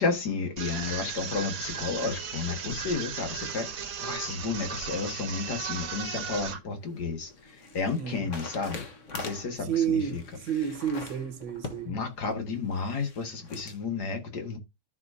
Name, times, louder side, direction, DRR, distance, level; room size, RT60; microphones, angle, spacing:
voice 1, 0.0-8.8 9.1-10.2 11.9-14.6, left 4 dB, 60° left, 2.2 m, -32 dB
sound 1, 0.6-6.6, right 7 dB, 55° right, 1.4 m, -36 dB
sound 2, 6.5-13.8, left 3 dB, 45° left, 1.5 m, -44 dB
voice 2, 8.0-8.3 9.6-12.0, right 8 dB, 85° right, 1.8 m, -30 dB
14.0 x 4.9 x 2.7 m
omnidirectional pair, 2.0 m